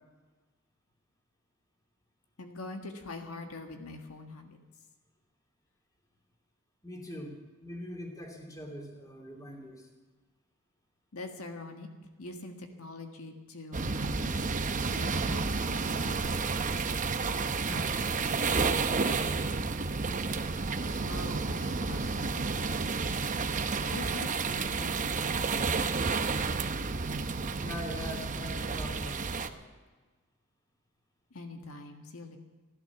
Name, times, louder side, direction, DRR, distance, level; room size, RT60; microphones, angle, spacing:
voice 1, 2.4-4.6 11.1-11.9 12.2-14.4 14.8-16.2 21.0-23.1 23.9-25.9 31.3-32.4, left 2 dB, 70° left, 4 dB, 1.7 m, -44 dB
voice 2, 6.8-9.9 17.6-17.9 18.5-19.4 27.6-29.6, equal, 15° left, 0 dB, 2.9 m, -42 dB
sound 1, 13.7-29.5, right 4 dB, 35° right, 0.8 m, -31 dB
15.5 x 12.0 x 7.1 m, 1.3 s
head